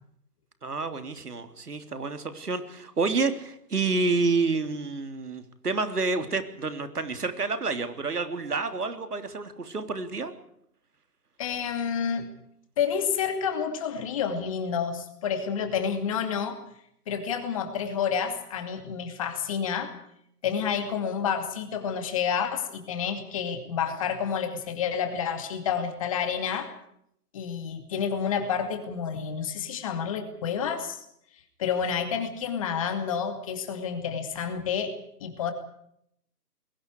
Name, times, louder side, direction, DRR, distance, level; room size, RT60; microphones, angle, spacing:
voice 1, 0.6-10.3, right 3 dB, 70° right, 8 dB, 3.5 m, -29 dB
voice 2, 11.4-12.3 12.8-16.6 17.1-19.9 20.4-26.7 27.3-31.0 31.6-34.9 35.2-35.5, left 7 dB, 20° left, 7 dB, 2.5 m, -29 dB
29.5 x 22.0 x 4.8 m, 0.72 s
figure-of-eight pair, 160°, 47 cm